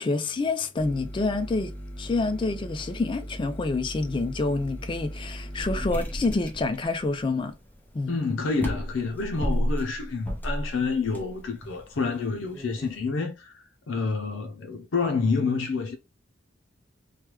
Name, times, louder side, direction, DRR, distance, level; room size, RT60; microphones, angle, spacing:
voice 1, 0.0-1.7 2.0-7.6 7.9-8.2, left 3 dB, 25° left, 0.3 m, -27 dB
sound 1, 0.8-13.0, equal, 10° left, 0.7 m, -35 dB
voice 2, 8.1-16.0, left 4 dB, 90° left, 0.5 m, -28 dB
3.2 x 2.2 x 3.0 m
head